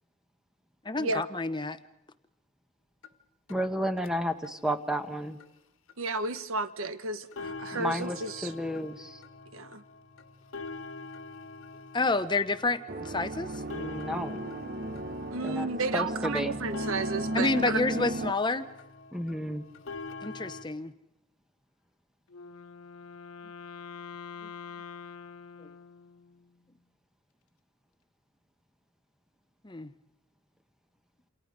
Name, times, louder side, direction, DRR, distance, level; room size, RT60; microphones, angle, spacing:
voice 1, 0.8-1.8 11.9-13.6 17.3-18.7 20.2-20.9 25.6-25.7 29.6-29.9, left 3 dB, 20° left, 12 dB, 0.9 m, -29 dB
sound 1, 3.0-3.1 3.5-3.6 4.0-4.1 4.4-4.5 4.9-5.0 5.4-5.5 5.9-6.0 6.4-6.5 6.8-6.9 7.2-20.6, left 3 dB, 70° left, 1.5 m, -44 dB
voice 2, 3.5-5.4 7.7-9.2 13.7-14.4 15.4-15.7 15.9-16.6 19.1-19.6, equal, ahead, 7 dB, 1.1 m, -32 dB
voice 3, 6.0-8.5 9.5-9.8 15.3-17.8, right 3 dB, 70° right, 12 dB, 1.2 m, -32 dB
FX Te absolvo, 12.9-18.3, right 1 dB, 45° right, 0.9 m, -35 dB
Wind instrument woodwind instrument, 22.3-26.5, left 6 dB, 85° left, 1.1 m, -45 dB
28.5 x 28.0 x 5.2 m, 0.92 s
head